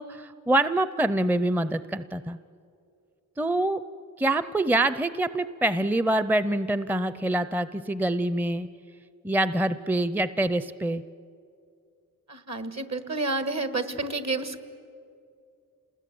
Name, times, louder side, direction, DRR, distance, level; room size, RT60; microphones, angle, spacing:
voice 1, 0.0-2.4 3.4-3.8 4.2-8.7 9.2-11.0, right 1 dB, 5° right, 14 dB, 0.5 m, -25 dB
voice 2, 12.3-14.6, right 3 dB, 55° right, 10 dB, 1.7 m, -30 dB
28.0 x 20.0 x 9.4 m, 2.4 s
wide cardioid pair, 70°, 32 cm